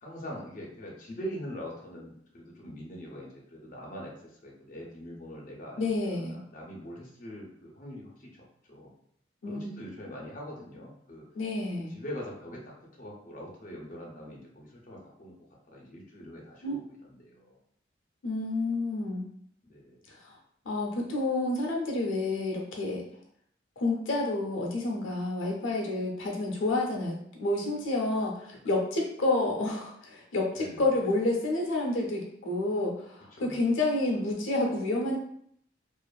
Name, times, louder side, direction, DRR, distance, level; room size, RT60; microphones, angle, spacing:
voice 1, 0.0-5.8 6.1-8.9 9.4-11.3 11.9-15.3 15.7-17.6 19.7-20.0 30.5-30.9 33.3-33.6, equal, 45° left, -3 dB, 0.6 m, -43 dB
voice 2, 5.8-6.4 9.4-9.7 11.3-12.0 16.6-16.8 18.2-19.3 20.1-20.4 20.6-23.0 23.8-35.2, left 2 dB, 90° left, 0 dB, 0.6 m, -29 dB
2.5 x 2.4 x 2.3 m, 0.67 s
head